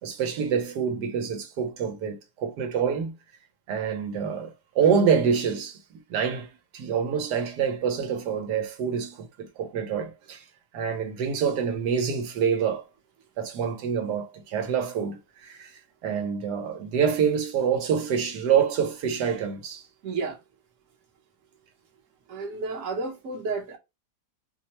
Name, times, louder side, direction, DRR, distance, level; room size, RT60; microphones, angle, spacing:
voice 1, 0.0-3.2 3.7-5.8 6.1-10.5 10.7-12.9 13.4-19.8, right 7 dB, 90° right, 1.4 m, -26 dB
voice 2, 20.0-20.4 22.3-23.8, right 4 dB, 55° right, 1.2 m, -31 dB
4.5 x 2.1 x 2.8 m
omnidirectional pair, 1.7 m